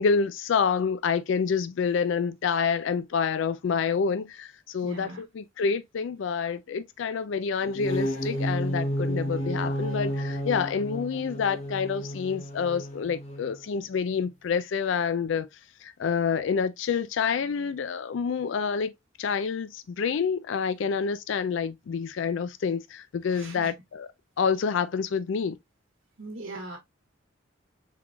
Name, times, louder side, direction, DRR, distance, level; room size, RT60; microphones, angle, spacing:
voice 1, 0.0-15.5 15.8-18.9 19.2-24.1 24.4-25.6, left 6 dB, 70° left, 0.4 m, -28 dB
voice 2, 4.8-5.3 23.2-23.7 26.2-26.8, right 2 dB, 75° right, 1.1 m, -40 dB
sound 1, 7.6-13.6, equal, 35° left, 1.0 m, -31 dB
4.6 x 3.7 x 2.3 m
head